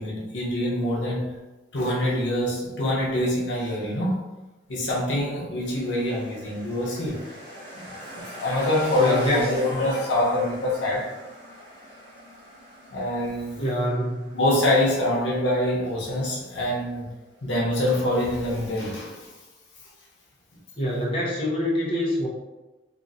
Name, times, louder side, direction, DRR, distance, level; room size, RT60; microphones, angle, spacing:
voice 1, 0.0-1.4 1.7-4.2 4.7-7.3 7.5-11.1 12.9-13.6 14.3-17.1 17.4-19.3, left 1 dB, 90° left, -4 dB, 0.8 m, -25 dB
sound 1, 5.6-18.8, equal, 80° right, 1.3 m, -43 dB
voice 2, 9.0-9.5 13.6-14.3 20.8-22.3, equal, 30° left, -6 dB, 0.6 m, -25 dB
2.9 x 2.4 x 2.5 m, 1.1 s
head